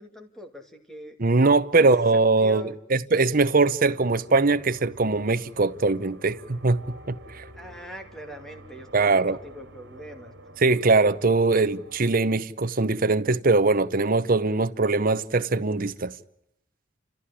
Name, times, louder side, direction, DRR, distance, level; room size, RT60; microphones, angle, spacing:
voice 1, 0.0-1.2 1.8-2.7 7.5-10.3, right 1 dB, 5° left, 2.4 m, -42 dB
voice 2, 1.2-7.4 8.9-9.4 10.6-16.1, right 3 dB, 45° right, 0.9 m, -22 dB
sound 1, 3.8-12.2, right 1 dB, 65° right, 3.1 m, -48 dB
29.5 x 14.5 x 9.9 m
head